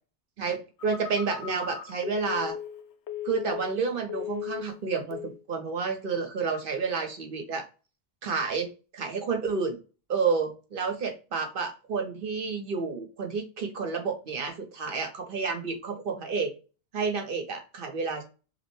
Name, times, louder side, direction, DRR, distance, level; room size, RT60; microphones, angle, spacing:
voice 1, 0.4-2.6 3.2-7.7 8.2-8.7 8.9-9.8 10.1-16.5 16.9-18.2, right 5 dB, 55° right, 4 dB, 1.0 m, -30 dB
Telephone, 0.8-4.8 5.1-5.4, left 10 dB, 90° left, 0.9 m, -37 dB
5.1 x 2.1 x 3.1 m, 0.33 s
omnidirectional pair, 1.1 m